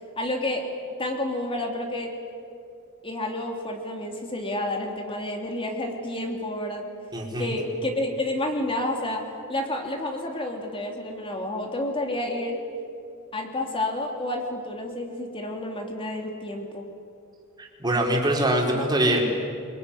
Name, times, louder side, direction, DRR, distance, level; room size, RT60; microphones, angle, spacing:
voice 1, 0.2-0.7 1.0-2.1 3.0-6.9 7.4-12.6 13.3-16.9, left 1 dB, 25° left, 2 dB, 3.1 m, -30 dB
voice 2, 7.1-7.5 17.8-19.2, right 1 dB, 20° right, -1 dB, 4.6 m, -23 dB
25.0 x 22.0 x 10.0 m, 2.6 s
head